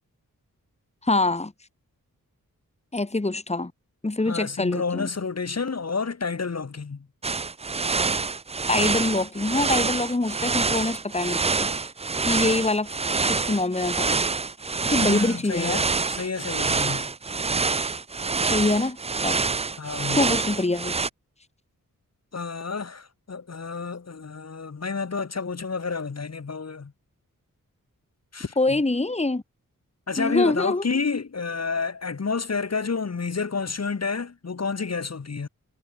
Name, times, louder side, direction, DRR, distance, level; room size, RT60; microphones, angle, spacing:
voice 1, 1.0-1.5 2.9-3.7 4.0-5.1 8.7-11.8 12.3-12.9 13.3-14.2 14.9-15.8 18.5-19.4 20.2-21.0 28.6-29.4 30.2-30.8, left 2 dB, 20° left, 2.1 m, -25 dB
voice 2, 4.3-7.1 15.0-17.1 19.8-20.2 22.3-26.9 28.3-28.8 30.1-35.5, left 5 dB, 50° left, 2.3 m, -30 dB
sound 1, 7.2-21.1, right 4 dB, 20° right, 0.4 m, -26 dB
wide cardioid pair, 100°, 33 cm